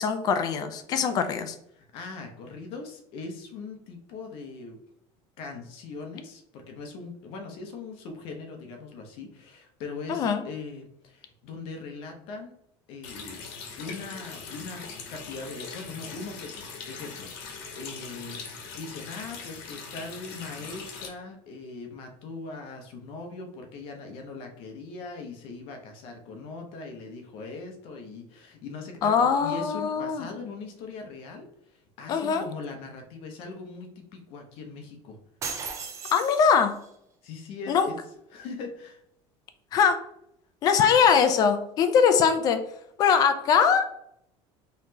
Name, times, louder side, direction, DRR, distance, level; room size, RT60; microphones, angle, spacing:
voice 1, 0.0-1.5 10.1-10.4 29.0-30.3 32.1-32.4 36.1-36.7 37.7-37.9 39.7-40.0 40.6-42.6 43.0-44.0, left 6 dB, 30° left, 8 dB, 0.4 m, -22 dB
voice 2, 1.7-4.8 5.4-12.5 12.9-13.4 13.8-14.8 15.1-35.2 37.2-37.9 38.3-39.0, left 4 dB, 50° left, 3 dB, 0.8 m, -40 dB
Water tap faucet, 13.0-21.1, left 5 dB, 90° left, 1.0 m, -41 dB
sound 1, 35.4-36.9, right 5 dB, 25° right, 0.4 m, -36 dB
4.0 x 3.1 x 2.7 m, 0.73 s
cardioid pair, 175°, 12 cm